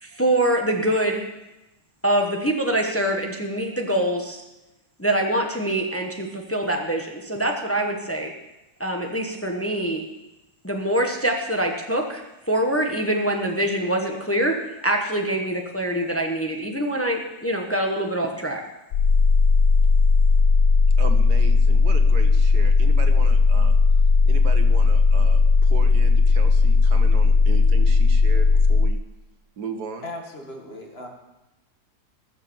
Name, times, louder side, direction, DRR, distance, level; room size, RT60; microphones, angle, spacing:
voice 1, 0.0-1.2 2.0-4.4 5.0-8.3 8.8-10.0 10.6-14.5 14.8-18.6, right 1 dB, 10° left, 2 dB, 1.2 m, -24 dB
sound 1, 18.9-28.9, left 4 dB, 70° left, 1.1 m, -16 dB
voice 2, 21.0-23.8 24.2-29.0 29.6-30.1, right 5 dB, 75° right, 7 dB, 1.7 m, -36 dB
voice 3, 30.0-31.1, left 1 dB, 40° left, 1 dB, 2.2 m, -37 dB
19.5 x 6.8 x 7.1 m, 0.99 s
omnidirectional pair, 1.7 m